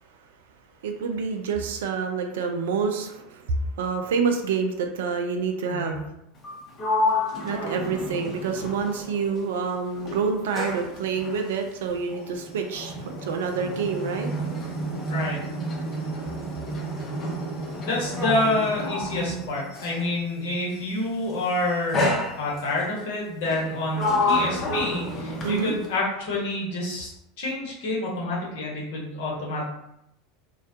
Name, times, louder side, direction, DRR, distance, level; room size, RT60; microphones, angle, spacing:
voice 1, 0.8-6.0 7.4-14.3 25.4-25.7, right 5 dB, 70° right, 5 dB, 0.3 m, -27 dB
voice 2, 5.7-6.0 15.1-15.4 17.8-27.1 27.4-29.6, left 2 dB, 65° left, -4 dB, 0.9 m, -28 dB
Sliding door, 6.4-9.7 10.0-20.1 21.0-21.3 21.9-22.9 23.4-26.0, left 1 dB, 40° left, 0.7 m, -29 dB
2.3 x 2.1 x 2.6 m, 0.82 s
figure-of-eight pair, 80°, 0 cm